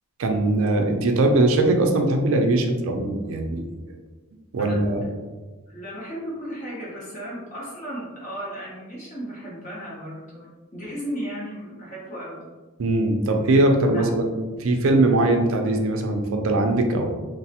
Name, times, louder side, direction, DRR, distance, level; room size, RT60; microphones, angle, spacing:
voice 1, 0.2-3.7 4.5-5.0 12.8-17.1, right 2 dB, 65° right, 4 dB, 0.4 m, -21 dB
voice 2, 5.7-10.5 10.7-12.5 13.8-14.1, equal, 35° left, -6 dB, 0.7 m, -35 dB
3.2 x 2.0 x 2.8 m, 1.3 s
head